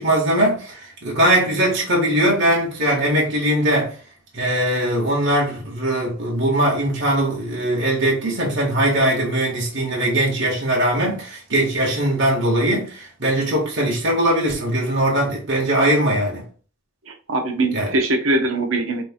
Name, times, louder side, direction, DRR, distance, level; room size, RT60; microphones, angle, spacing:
voice 1, 0.0-4.0 4.3-16.4 17.7-17.9, right 1 dB, 60° right, 1.6 m, -20 dB
voice 2, 17.1-19.0, right 2 dB, 80° right, 0.9 m, -22 dB
5.5 x 3.4 x 2.3 m
head